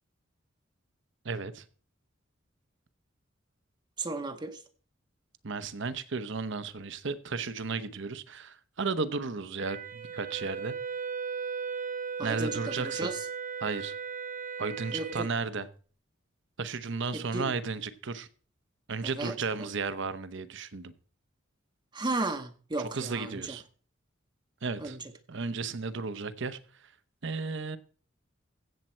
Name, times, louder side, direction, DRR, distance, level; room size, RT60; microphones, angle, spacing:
voice 1, 1.2-1.6 5.4-10.7 12.2-13.1 13.6-13.9 14.6-15.7 16.6-18.3 18.9-20.9 22.8-23.6 24.6-25.0 25.3-26.6 27.2-27.8, right 4 dB, 65° right, 0.9 m, -34 dB
voice 2, 4.0-4.6 12.2-13.2 14.9-15.3 17.1-17.5 19.0-19.7 21.9-23.6 24.8-25.0, right 2 dB, 20° right, 0.8 m, -34 dB
Wind instrument woodwind instrument, 9.6-15.3, right 6 dB, 45° right, 1.2 m, -37 dB
15.5 x 7.5 x 4.4 m
head